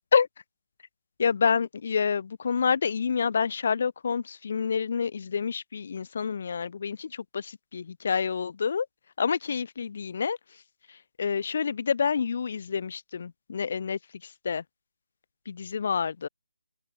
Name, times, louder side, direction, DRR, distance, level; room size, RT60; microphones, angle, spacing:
voice 1, 1.2-8.9 9.2-10.4 11.2-14.0 14.4-14.6 15.5-16.3, left 6 dB, 45° left, 0.5 m, -28 dB
open air
figure-of-eight pair, 150°, 0 cm